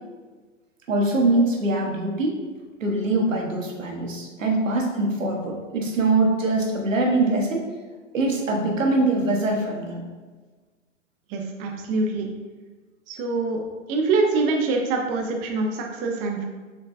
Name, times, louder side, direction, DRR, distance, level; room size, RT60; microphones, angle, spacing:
voice 1, 0.9-2.4 2.8-7.7 8.1-10.0, right 2 dB, 85° right, 0 dB, 0.9 m, -23 dB
voice 2, 11.3-12.3 13.1-13.6 13.9-16.4, right 3 dB, 20° right, 1 dB, 0.4 m, -24 dB
6.4 x 2.2 x 2.3 m, 1.4 s
figure-of-eight pair, 105°, 38 cm